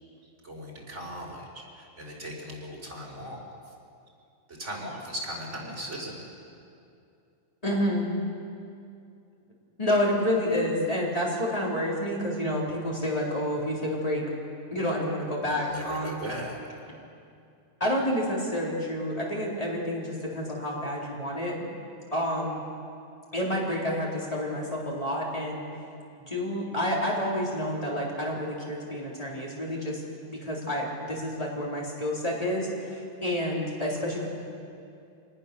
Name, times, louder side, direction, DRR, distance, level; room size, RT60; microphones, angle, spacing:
voice 1, 0.4-3.5 4.5-6.3 15.4-16.6, equal, 75° right, -2 dB, 4.8 m, -38 dB
voice 2, 7.6-8.1 9.8-14.3 14.7-16.2 17.8-21.7 22.1-22.6 23.3-25.6 26.3-34.3, left 1 dB, 30° left, -4 dB, 4.0 m, -29 dB
25.0 x 19.0 x 6.9 m, 2.5 s
omnidirectional pair, 1.3 m